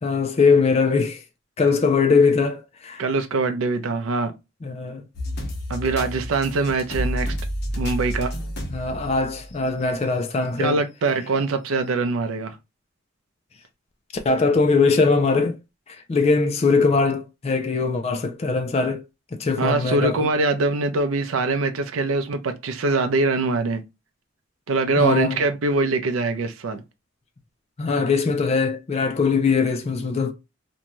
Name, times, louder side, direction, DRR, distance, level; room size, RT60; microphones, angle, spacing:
voice 1, 0.0-1.2 1.6-3.0 4.6-5.1 8.7-10.8 14.1-15.6 15.9-19.0 19.3-20.3 25.0-25.4 27.8-30.3, left 4 dB, 30° left, 0.3 m, -21 dB
voice 2, 3.0-4.3 5.7-7.3 7.7-8.3 10.6-12.6 19.6-23.8 24.7-26.8, right 3 dB, 75° right, 0.5 m, -23 dB
sound 1, 5.1-9.8 10.3-10.4 11.4-11.5, equal, 50° left, 0.8 m, -30 dB
2.6 x 2.2 x 2.9 m
head